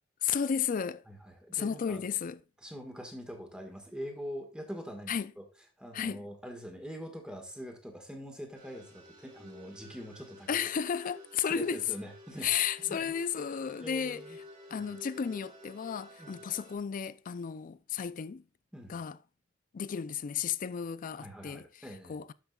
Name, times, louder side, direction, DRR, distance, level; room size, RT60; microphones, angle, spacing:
voice 1, 0.2-1.0 1.5-2.4 5.1-5.3 5.9-6.2 10.5-11.8 12.4-14.2 14.7-18.4 18.9-19.2 19.7-21.7 22.1-22.3, left 7 dB, 40° left, 0.4 m, -33 dB
voice 2, 1.1-2.0 2.6-5.4 5.8-10.6 11.5-12.5 12.8-13.1 13.8-14.4 14.7-14.9 16.2-16.4 18.7-18.9 21.2-22.2, equal, 5° right, 1.6 m, -44 dB
sound 1, 8.5-16.8, left 1 dB, 35° right, 3.6 m, -52 dB
12.5 x 5.8 x 2.3 m
head